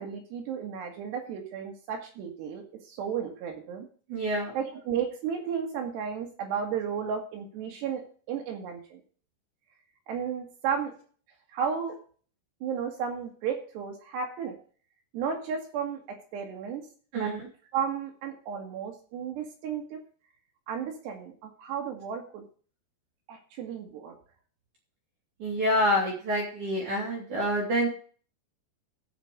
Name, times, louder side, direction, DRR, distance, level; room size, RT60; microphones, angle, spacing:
voice 1, 0.0-2.6 2.9-3.9 4.5-8.0 8.3-9.0 10.1-10.9 11.5-11.9 12.6-14.6 15.1-16.8 17.1-17.3 17.7-20.0 20.7-22.4 23.3-24.1, right 7 dB, 65° right, 3 dB, 3.3 m, -33 dB
voice 2, 4.1-4.5 17.1-17.5 25.4-27.9, equal, 45° right, -2 dB, 3.3 m, -27 dB
15.0 x 5.1 x 5.2 m, 0.43 s
omnidirectional pair, 5.8 m